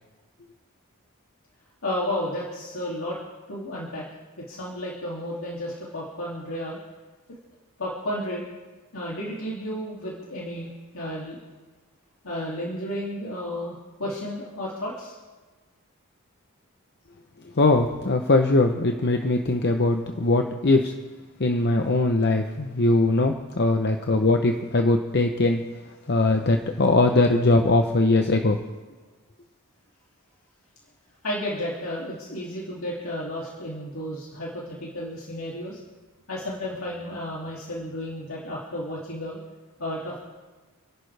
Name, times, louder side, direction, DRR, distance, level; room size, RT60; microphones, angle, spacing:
voice 1, 1.8-3.2 3.5-4.0 4.4-6.8 7.3-7.4 7.8-8.4 8.9-11.4 12.2-15.1 31.2-35.8 36.3-39.4 39.8-40.2, left 1 dB, 70° left, -5 dB, 2.7 m, -32 dB
voice 2, 17.5-20.9 21.4-25.6 26.1-28.6, left 2 dB, 50° left, 4 dB, 0.8 m, -21 dB
29.0 x 11.5 x 3.4 m, 1.3 s
head